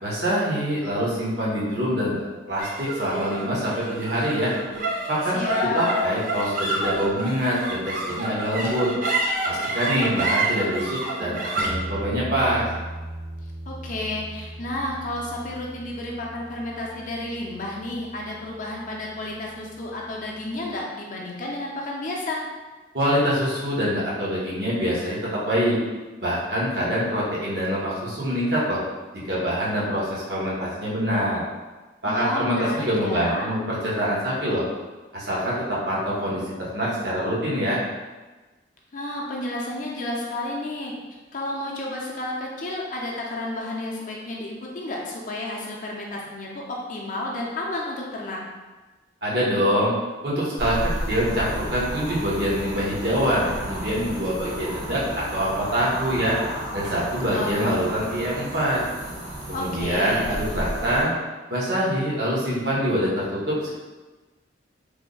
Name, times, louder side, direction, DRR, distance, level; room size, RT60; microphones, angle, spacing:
voice 1, 0.0-4.5 5.1-5.4 5.7-8.9 9.4-12.6 22.9-25.8 26.2-28.8 29.2-31.4 32.0-34.6 35.1-37.8 49.2-49.9 50.2-56.3 56.7-58.8 59.5-61.1 61.5-63.7, equal, 60° right, -7 dB, 1.0 m, -25 dB
sound 1, 2.6-19.2, right 2 dB, 45° right, 0.5 m, -30 dB
voice 2, 5.3-5.9 13.7-22.4 32.0-33.5 38.9-40.9 41.3-48.4 57.3-57.8 59.5-60.3, left 1 dB, 45° left, -2 dB, 0.5 m, -31 dB
sound 2, 50.6-61.0, equal, 85° right, 1.0 m, -33 dB
3.3 x 2.1 x 3.8 m, 1.2 s
head